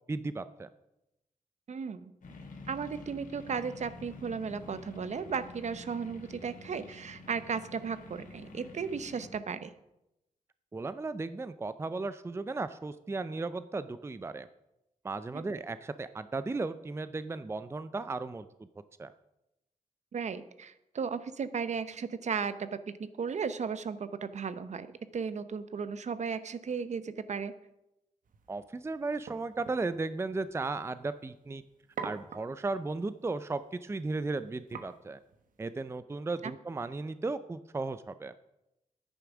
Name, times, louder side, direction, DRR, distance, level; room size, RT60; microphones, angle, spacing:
voice 1, 0.1-0.7 10.7-14.5 15.0-18.5 19.0-19.1 28.5-31.6 32.0-35.2 35.6-38.3, right 3 dB, 20° right, 13 dB, 0.4 m, -35 dB
voice 2, 1.7-2.1 2.7-9.7 15.3-15.4 20.1-27.5 36.4-36.5, right 6 dB, 60° right, 13 dB, 0.8 m, -35 dB
sound 1, 2.2-9.3, left 2 dB, 75° left, 2.4 m, -48 dB
sound 2, 28.3-36.0, right 5 dB, 80° right, 1.3 m, -49 dB
10.5 x 9.3 x 6.1 m, 0.90 s
wide cardioid pair, 95°, 14 cm